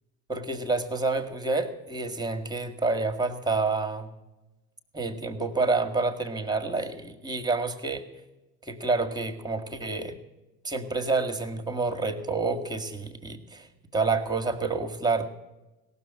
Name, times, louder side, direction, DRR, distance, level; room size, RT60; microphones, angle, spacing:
voice 1, 0.3-4.1 4.9-8.0 8.6-10.2 10.6-13.7 13.9-15.3, right 3 dB, 10° right, 6 dB, 1.8 m, -28 dB
17.5 x 6.9 x 9.0 m, 1.1 s
hypercardioid pair, 60°, 42 cm